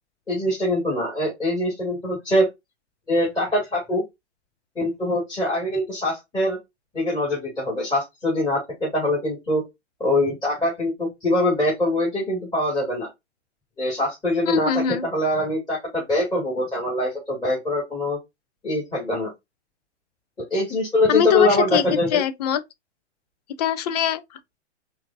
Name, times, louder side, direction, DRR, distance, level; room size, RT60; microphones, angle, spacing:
voice 1, 0.3-2.5 3.1-4.0 4.8-6.6 6.9-9.6 10.0-13.1 13.8-18.2 18.6-19.3 20.4-22.2, left 1 dB, 10° left, 2.4 m, -23 dB
voice 2, 14.4-15.1 21.1-21.8 22.1-22.6 23.6-24.6, left 8 dB, 35° left, 0.5 m, -23 dB
4.8 x 2.7 x 2.3 m
figure-of-eight pair, 120°, 35 cm